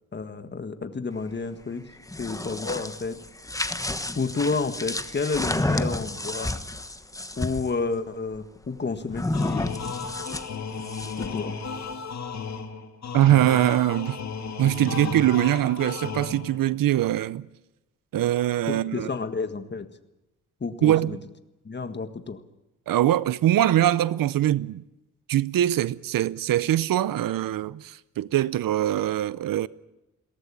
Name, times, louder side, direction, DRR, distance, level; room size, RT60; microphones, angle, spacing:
voice 1, 0.1-1.9 2.2-3.2 4.1-6.5 7.4-9.7 11.2-11.6 18.7-19.9 20.6-21.2 21.6-22.4, left 4 dB, 30° left, 1.7 m, -30 dB
sound 1, 1.9-7.7 9.1-11.4, left 2 dB, 10° left, 1.2 m, -30 dB
sound 2, 9.3-16.7, left 5 dB, 55° left, 2.1 m, -34 dB
voice 2, 13.1-14.2 14.6-17.5 18.1-19.1 20.8-21.2 22.9-24.8 25.3-29.7, right 13 dB, 85° right, 0.7 m, -22 dB
22.0 x 18.0 x 8.6 m
cardioid pair, 105°, 33 cm